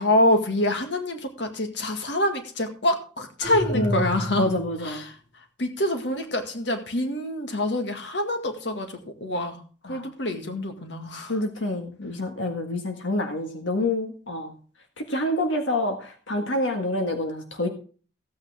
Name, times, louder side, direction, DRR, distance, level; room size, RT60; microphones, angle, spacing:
voice 1, 0.0-4.5 4.8-5.2 5.6-11.3, left 1 dB, 70° left, 6 dB, 1.9 m, -26 dB
sound 1, 3.4-4.9, left 1 dB, 35° left, 2.3 m, -30 dB
voice 2, 3.7-4.1 4.4-5.0 9.8-10.1 11.3-14.5 15.0-17.7, left 1 dB, 85° left, 4 dB, 1.6 m, -27 dB
15.5 x 8.8 x 3.5 m, 0.39 s
head